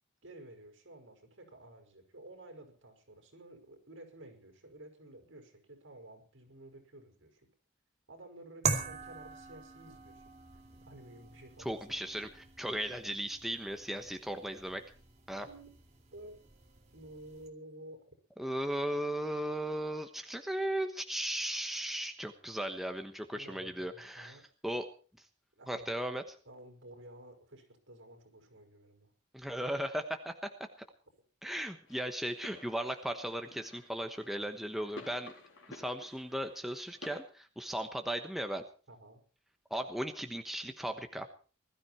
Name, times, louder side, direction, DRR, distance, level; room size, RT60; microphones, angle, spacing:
voice 1, 0.2-7.5 8.1-10.3 10.9-12.0 15.4-15.7 16.1-16.4 16.9-18.0 23.3-24.5 25.5-26.1 26.4-29.1 38.9-39.2, right 1 dB, 75° right, 4 dB, 5.9 m, -52 dB
sound 1, 8.6-17.5, right 5 dB, 35° right, 2.7 m, -42 dB
voice 2, 11.6-12.3 12.6-14.8 15.3-15.5 18.4-24.4 24.6-24.9 25.7-26.2 29.3-30.5 31.4-35.3 35.7-38.6 39.7-41.3, right 1 dB, ahead, 5 dB, 1.1 m, -36 dB
sound 2, 31.9-37.2, left 2 dB, 90° left, 4.1 m, -52 dB
20.5 x 13.0 x 4.5 m, 0.38 s
head